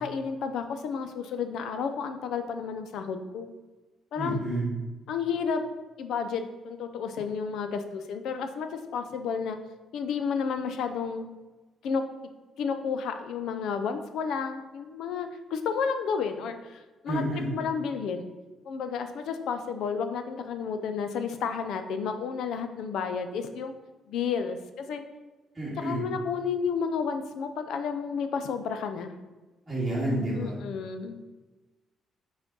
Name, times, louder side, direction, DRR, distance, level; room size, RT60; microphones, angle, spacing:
voice 1, 0.0-3.5 4.1-4.4 5.1-5.6 6.0-9.6 9.9-11.3 11.8-12.0 12.6-17.2 17.5-18.3 18.7-23.7 24.1-25.0 25.8-29.1 30.3-31.2, left 6 dB, 75° left, 8 dB, 0.6 m, -31 dB
voice 2, 4.2-4.7 17.1-17.5 25.6-26.0 29.7-30.6, right 1 dB, 10° right, -9 dB, 1.9 m, -29 dB
5.8 x 4.3 x 4.0 m, 1.2 s
cardioid pair, 125°, 0 cm